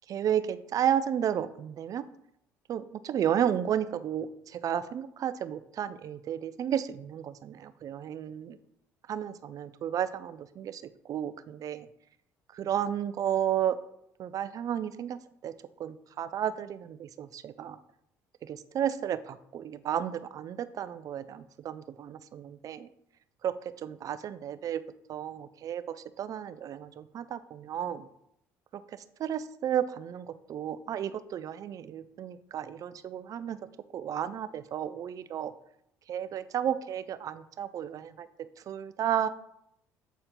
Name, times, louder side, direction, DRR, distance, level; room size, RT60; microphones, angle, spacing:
voice 1, 0.1-2.0 2.7-8.6 9.1-10.8 11.1-11.9 12.5-13.8 14.2-15.5 15.8-17.8 18.4-22.9 23.4-23.5 23.8-24.8 25.1-28.1 29.2-33.6 33.9-35.5 36.1-39.3, right 9 dB, 55° right, 13 dB, 0.5 m, -32 dB
8.1 x 4.4 x 3.7 m, 0.75 s
supercardioid pair, 80°, 7 cm